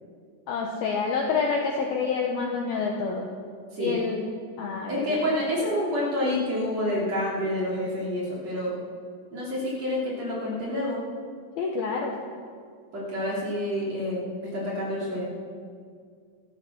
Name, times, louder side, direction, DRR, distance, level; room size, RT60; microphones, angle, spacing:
voice 1, 0.5-3.3 3.8-4.3 4.6-4.9 11.6-12.2, left 5 dB, 85° left, 1 dB, 2.1 m, -27 dB
voice 2, 4.9-8.8 9.3-11.0 12.9-15.3, left 1 dB, 35° right, -5 dB, 3.5 m, -28 dB
25.5 x 8.7 x 6.1 m, 2.1 s
omnidirectional pair, 5.9 m